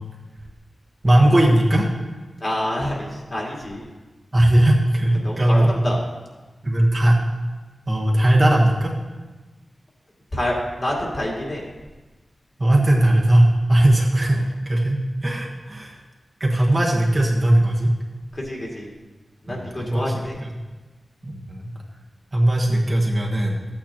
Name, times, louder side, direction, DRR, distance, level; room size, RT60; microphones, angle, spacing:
voice 1, 1.0-1.9 4.3-5.7 6.6-7.2 7.9-8.9 12.6-15.9 16.4-17.9 19.5-20.1 21.2-21.7 22.3-23.6, right 1 dB, 30° right, -2 dB, 1.3 m, -18 dB
voice 2, 2.4-3.9 5.1-6.0 10.3-11.6 14.3-14.4 18.3-18.9 19.4-20.4, left 1 dB, 35° left, -3 dB, 2.3 m, -27 dB
13.5 x 8.8 x 2.9 m, 1.2 s
wide cardioid pair, 110°, 0 cm